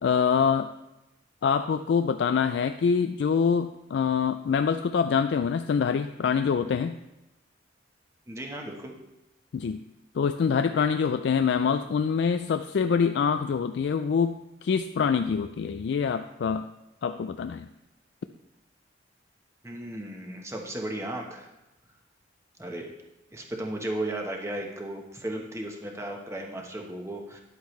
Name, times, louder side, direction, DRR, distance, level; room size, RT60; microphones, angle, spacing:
voice 1, 0.0-0.7 1.4-7.0 9.5-9.8 10.1-16.7 17.0-17.7, left 6 dB, 70° left, 9 dB, 0.3 m, -25 dB
voice 2, 8.3-8.9 19.6-21.5 22.6-22.9 23.3-27.4, right 1 dB, 15° right, 1 dB, 1.1 m, -35 dB
10.5 x 8.0 x 3.2 m, 0.96 s
head